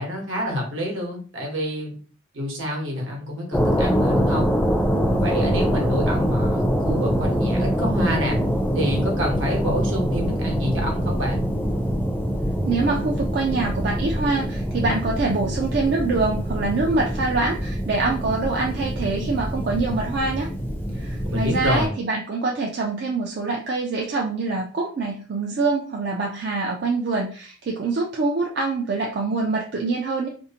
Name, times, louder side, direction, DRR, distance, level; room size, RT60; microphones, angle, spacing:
voice 1, 0.0-2.0 2.3-4.5 5.0-8.4 8.7-11.4 21.2-21.9, equal, 70° right, 0 dB, 0.9 m, -27 dB
sound 1, 3.5-21.9, equal, 10° left, 0.4 m, -24 dB
voice 2, 12.7-20.5 20.9-30.3, right 3 dB, 50° right, -1 dB, 0.3 m, -25 dB
2.5 x 2.1 x 2.8 m, 0.41 s
head